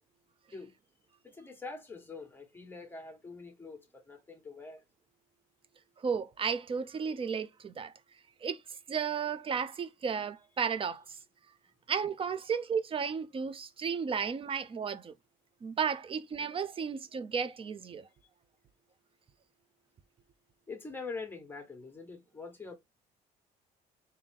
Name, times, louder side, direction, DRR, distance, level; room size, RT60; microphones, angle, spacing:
voice 1, 1.2-4.8 20.7-22.7, left 4 dB, 10° left, 1.3 m, -44 dB
voice 2, 6.0-7.9 8.4-8.6 8.9-11.2 11.9-15.1 15.6-18.1, right 6 dB, 30° right, 0.5 m, -33 dB
3.5 x 2.8 x 3.7 m
cardioid pair, 110°, 17 cm